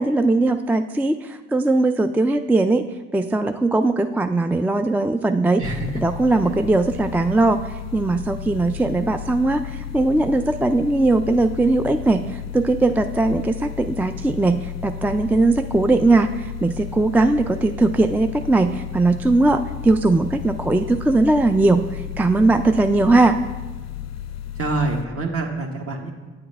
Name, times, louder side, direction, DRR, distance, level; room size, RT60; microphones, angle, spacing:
voice 1, 0.0-2.8 3.1-5.6 6.0-23.4, right 2 dB, 5° right, 8 dB, 0.3 m, -19 dB
sound 1, 5.6-25.0, left 10 dB, 60° left, 0.5 m, -33 dB
voice 2, 5.6-6.0 6.4-6.5 22.9-23.2 24.6-26.1, right 3 dB, 45° right, 2 dB, 1.4 m, -26 dB
8.6 x 7.7 x 3.3 m, 1.2 s
hypercardioid pair, 55°, 31 cm